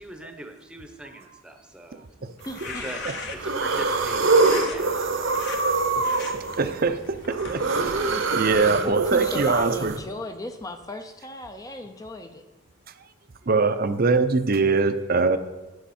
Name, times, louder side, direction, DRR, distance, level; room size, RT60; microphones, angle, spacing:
voice 1, 0.0-2.0 2.6-3.0 3.3-5.1, right 1 dB, 5° right, 5 dB, 0.9 m, -41 dB
sound 1, 2.4-3.6 4.3-4.8 5.3-5.6 6.0-6.3 6.9-9.5, left 4 dB, 55° left, 1.1 m, -39 dB
sound 2, 2.4-2.8 3.3-10.0, right 3 dB, 65° right, 1.0 m, -24 dB
voice 2, 2.5-2.9 6.2-6.3 6.6-6.7 8.3-12.4, left 1 dB, 15° left, 7 dB, 0.5 m, -36 dB
voice 3, 6.1-9.9 13.5-15.4, right 4 dB, 45° right, 11 dB, 0.6 m, -23 dB
11.5 x 8.1 x 4.3 m, 1.1 s
head